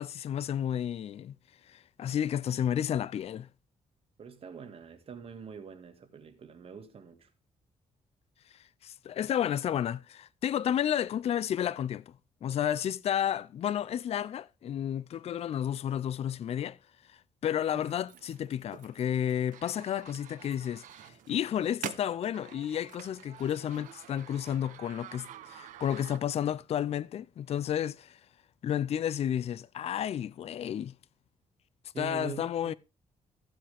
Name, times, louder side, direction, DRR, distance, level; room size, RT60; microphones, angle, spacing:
voice 1, 0.0-1.3 1.7-3.5 8.8-12.1 12.4-16.8 17.4-28.2 28.6-30.9 32.0-32.7, left 10 dB, 50° left, 0.5 m, -31 dB
voice 2, 4.2-7.3 31.9-32.8, right 7 dB, 50° right, 1.9 m, -44 dB
sound 1, 17.7-26.6, right 11 dB, 90° right, 0.8 m, -47 dB
15.0 x 7.5 x 3.4 m
cardioid pair, 125°, 13 cm